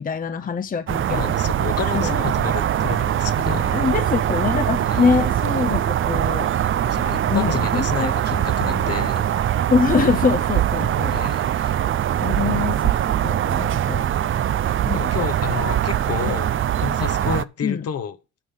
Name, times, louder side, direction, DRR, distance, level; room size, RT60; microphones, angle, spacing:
voice 1, 0.0-1.4 1.9-2.2 3.7-6.5 7.3-8.1 9.7-11.2 12.2-14.1 14.8-15.1 16.3-16.4 17.6-17.8, left 5 dB, 30° left, 0.7 m, -24 dB
sound 1, 0.9-17.4, right 11 dB, 45° right, 0.5 m, -22 dB
voice 2, 1.1-3.7 4.8-5.0 6.8-9.4 11.1-11.8 14.9-18.2, left 7 dB, 55° left, 1.0 m, -30 dB
9.3 x 5.4 x 5.4 m
cardioid pair, 90°, 30 cm